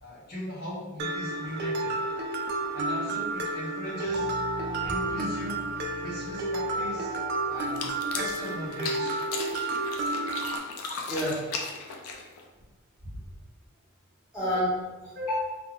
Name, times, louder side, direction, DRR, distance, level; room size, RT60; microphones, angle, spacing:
voice 1, 0.0-2.0 2.7-4.3 4.6-5.7 6.0-7.1 7.5-9.2, left 1 dB, 45° left, -7 dB, 0.9 m, -39 dB
Mallet percussion, 1.0-10.6, right 2 dB, 50° right, 0.3 m, -31 dB
sound 1, 4.1-9.0, left 4 dB, 25° left, 0.4 m, -45 dB
voice 2, 6.7-7.7 11.1-11.5 13.1-13.2 14.3-15.6, left 1 dB, 5° right, -13 dB, 1.1 m, -32 dB
sound 2, 7.6-12.5, left 4 dB, 85° left, 0.4 m, -36 dB
3.4 x 2.2 x 2.3 m, 1.2 s
head